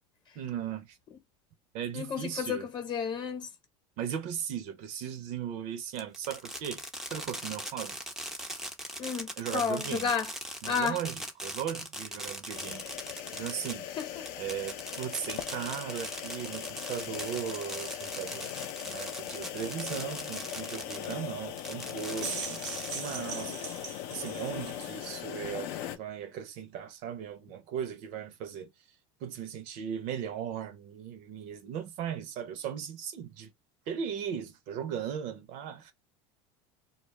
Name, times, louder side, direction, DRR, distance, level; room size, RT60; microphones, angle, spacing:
voice 1, 0.4-1.0 1.7-2.7 4.0-8.0 9.4-10.1 10.6-12.8 13.3-13.9 14.4-18.5 18.8-23.6 24.1-28.7 29.2-33.5 33.9-35.9, right 8 dB, 55° right, 0.6 m, -37 dB
voice 2, 1.9-3.5 9.0-10.3 10.7-11.0 14.0-14.3, left 6 dB, 30° left, 0.8 m, -32 dB
Fireworks, 6.0-21.2 21.6-23.4, right 1 dB, 5° right, 0.4 m, -40 dB
sound 1, 12.5-26.0, left 11 dB, 60° left, 0.5 m, -40 dB
sound 2, 21.9-25.0, right 6 dB, 90° right, 1.0 m, -40 dB
2.3 x 2.0 x 3.0 m
supercardioid pair, 125°, 15 cm